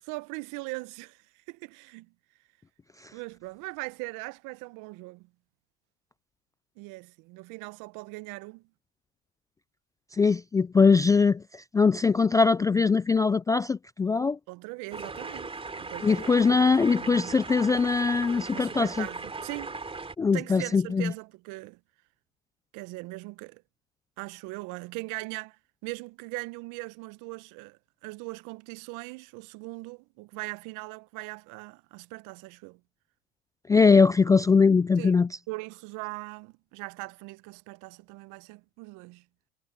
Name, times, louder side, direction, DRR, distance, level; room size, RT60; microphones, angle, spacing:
voice 1, 0.0-1.2 1.5-2.1 3.1-5.3 6.8-8.6 14.5-16.4 16.8-17.4 18.5-19.8 20.3-21.8 22.7-23.6 24.2-25.6 25.8-32.8 35.0-39.2, right 25 dB, 55° right, 1.3 m, -40 dB
voice 2, 10.1-14.4 16.0-19.1 20.2-21.1 33.7-35.3, left 4 dB, 10° left, 0.3 m, -22 dB
sound 1, 14.9-20.1, right 3 dB, 15° right, 3.5 m, -38 dB
hypercardioid pair, 85°, 36 cm